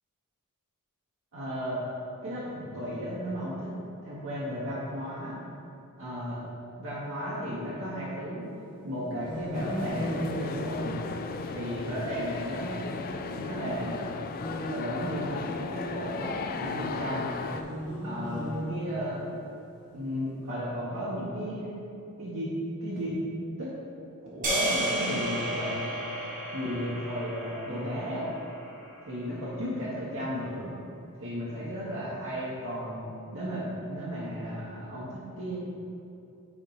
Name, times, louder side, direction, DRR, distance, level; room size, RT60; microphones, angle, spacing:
voice 1, 1.3-1.8 2.2-3.7 4.0-5.4 6.0-6.4 6.8-8.4 8.8-11.0 11.5-12.8 13.2-14.0 14.7-17.3 18.0-19.2 19.9-21.7 22.2-22.5 22.8-23.2 23.6-23.7 24.2-25.9 26.5-28.3 29.0-30.7 31.2-33.0 33.3-35.6, equal, 65° right, -8 dB, 1.2 m, -34 dB
sound 1, 9.2-11.5 14.3-15.6 17.4-19.3, equal, 25° left, 1.4 m, -36 dB
sound 2, 9.5-17.6, left 4 dB, 40° left, 0.3 m, -36 dB
sound 3, 24.4-28.8, right 1 dB, 35° right, 1.2 m, -32 dB
5.6 x 4.4 x 4.9 m, 2.7 s
head